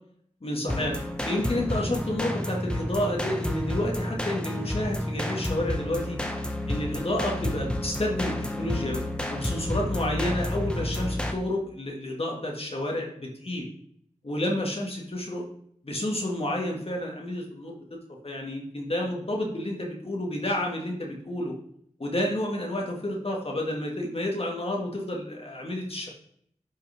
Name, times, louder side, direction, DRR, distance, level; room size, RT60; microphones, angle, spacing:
voice 1, 0.4-1.0 1.2-6.2 6.7-9.0 9.3-13.7 14.2-15.4 15.8-17.8 18.2-21.5 22.0-26.1, left 1 dB, 50° left, -1 dB, 2.3 m, -30 dB
sound 1, 0.7-11.3, left 1 dB, 10° left, 1.3 m, -30 dB
11.0 x 5.5 x 3.7 m, 0.66 s
wide cardioid pair, 45°, 13 cm